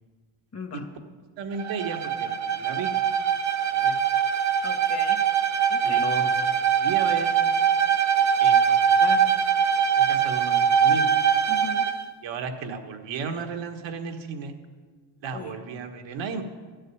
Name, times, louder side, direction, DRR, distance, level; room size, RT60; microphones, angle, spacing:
voice 1, 0.5-0.9 4.6-5.3 5.7-6.1 11.5-11.9 15.3-15.5, left 5 dB, 30° left, 5 dB, 1.7 m, -38 dB
voice 2, 1.4-2.9 3.6-4.0 5.8-6.5 6.8-7.4 8.4-9.2 9.5-9.6 10.0-11.1 12.2-14.5 15.2-16.4, right 5 dB, 70° right, 4 dB, 1.6 m, -34 dB
Bowed string instrument, 1.5-12.0, right 7 dB, 35° right, 0.7 m, -22 dB
13.0 x 6.5 x 9.6 m, 1.5 s
cardioid pair, 100°, 46 cm